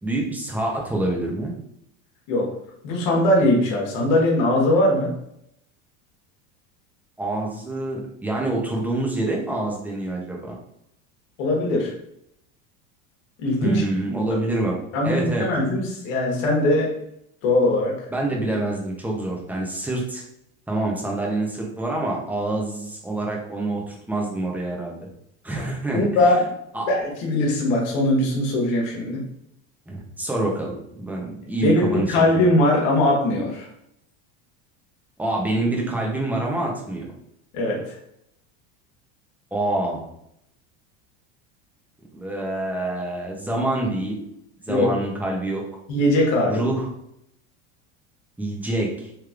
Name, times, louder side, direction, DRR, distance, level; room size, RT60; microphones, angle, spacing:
voice 1, 0.0-1.5 7.2-10.6 13.6-14.7 15.0-15.5 18.1-20.2 20.7-25.1 25.4-26.3 26.7-26.9 29.9-30.7 31.0-32.2 35.2-37.1 39.5-40.1 42.1-44.2 44.7-45.6 46.5-46.9 48.4-49.1, right 2 dB, 5° right, -2 dB, 0.6 m, -26 dB
voice 2, 2.8-5.1 11.4-11.9 13.4-13.8 14.9-16.9 17.4-17.9 25.6-25.7 25.9-26.4 26.9-29.2 31.6-33.7 37.5-37.8 44.7-44.9 45.9-46.7, left 1 dB, 75° left, -1 dB, 1.3 m, -20 dB
3.3 x 3.1 x 2.4 m, 0.76 s
supercardioid pair, 125°, 38 cm